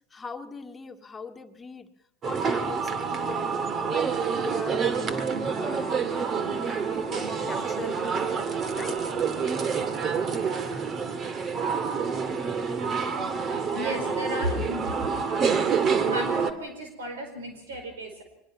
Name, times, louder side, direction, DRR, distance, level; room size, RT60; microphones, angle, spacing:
voice 1, 0.1-1.9 2.2-5.3 5.6-8.4 8.7-9.0, left 5 dB, 20° left, 5 dB, 1.9 m, -40 dB
sound 1, 2.2-16.5, right 6 dB, 35° right, 1.9 m, -27 dB
voice 2, 13.7-15.0 15.3-15.4 16.1-18.2, equal, 85° right, 5 dB, 4.9 m, -33 dB
24.0 x 20.5 x 6.1 m, 0.86 s
hypercardioid pair, 85°, 0 cm